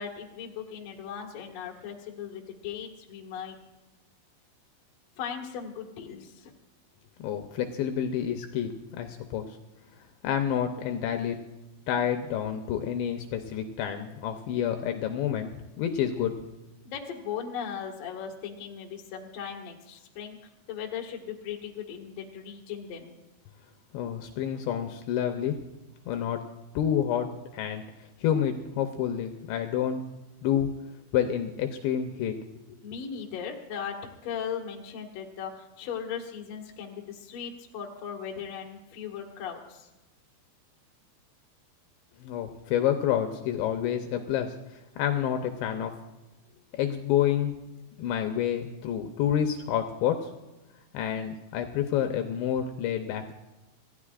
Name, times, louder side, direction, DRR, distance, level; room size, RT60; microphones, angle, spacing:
voice 1, 0.0-3.6 5.2-6.5 16.8-20.4 20.7-23.1 32.8-34.0 34.2-39.9, left 7 dB, 55° left, 1 dB, 1.9 m, -38 dB
voice 2, 7.2-9.6 10.2-11.4 11.9-15.5 15.8-16.4 23.9-25.6 26.1-26.4 26.7-27.8 28.2-30.0 30.4-30.7 31.1-32.3 42.2-45.9 46.7-47.5 48.0-50.3 50.9-53.4, left 9 dB, 75° left, 5 dB, 2.8 m, -28 dB
26.5 x 15.5 x 2.5 m, 1.1 s
omnidirectional pair, 5.7 m